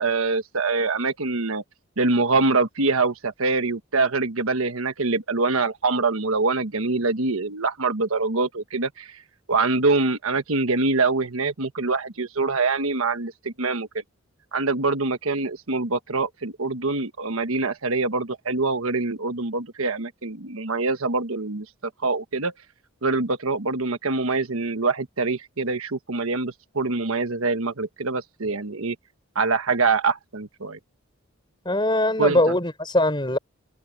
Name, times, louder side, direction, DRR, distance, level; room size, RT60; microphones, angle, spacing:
voice 1, 0.0-1.6 2.0-9.2 9.5-13.9 14.5-21.7 22.0-22.5 23.0-28.9 29.3-30.8 32.2-32.4, right 3 dB, 80° right, 1.3 m, -24 dB
voice 2, 31.6-33.4, left 1 dB, 20° left, 4.8 m, -21 dB
head